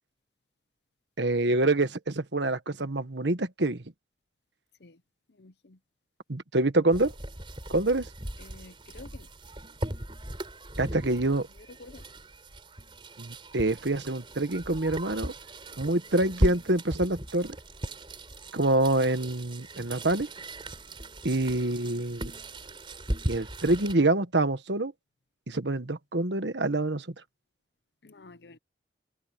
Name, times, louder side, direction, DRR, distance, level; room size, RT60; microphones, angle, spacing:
voice 1, 1.2-3.8 6.3-7.1 7.7-8.1 10.8-11.5 13.2-15.3 15.8-17.5 18.5-20.3 21.2-22.2 23.3-24.9 25.5-27.1, right 2 dB, 85° right, 1.5 m, -26 dB
voice 2, 5.4-5.8 8.4-9.3 11.8-12.0 28.0-28.6, left 3 dB, 75° left, 0.9 m, -49 dB
sound 1, 6.9-24.0, right 1 dB, 30° right, 4.4 m, -37 dB
head